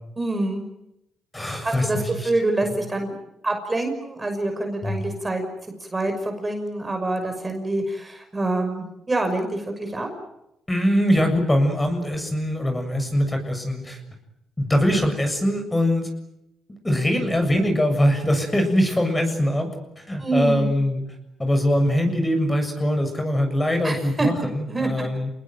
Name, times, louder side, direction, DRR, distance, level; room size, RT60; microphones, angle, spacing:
voice 1, 0.2-0.6 1.6-3.1 3.4-10.1 20.2-20.7 23.8-24.3 24.7-24.9, right 2 dB, 20° right, 5 dB, 5.9 m, -26 dB
voice 2, 1.3-2.3 2.6-2.7 4.8-5.0 10.7-14.0 14.6-16.1 16.8-21.0 21.4-25.3, equal, 15° left, 5 dB, 7.3 m, -22 dB
28.5 x 20.5 x 9.4 m, 0.87 s
cardioid pair, 90°, 0 cm